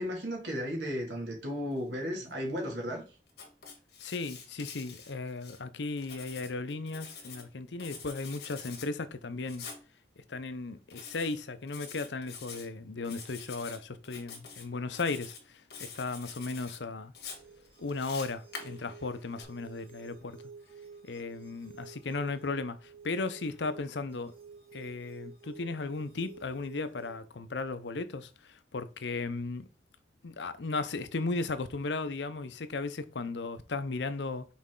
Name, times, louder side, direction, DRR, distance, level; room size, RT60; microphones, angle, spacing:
voice 1, 0.0-3.0, equal, 80° right, 2.2 m, -34 dB
Writing, 3.3-5.6 6.0-7.4 7.8-8.9 9.5-9.8 10.9-11.4 11.7-12.6 13.0-13.8 14.0-14.6 14.9-15.4 15.7-16.8 17.1-19.4, left 6 dB, 60° left, 1.7 m, -46 dB
voice 2, 4.0-9.7 10.3-17.1 17.8-20.4 21.0-24.3 24.7-29.7 30.2-34.5, left 3 dB, 80° left, 0.7 m, -36 dB
sound 1, 17.2-27.2, right 5 dB, 30° right, 1.7 m, -52 dB
6.1 x 4.2 x 3.7 m
head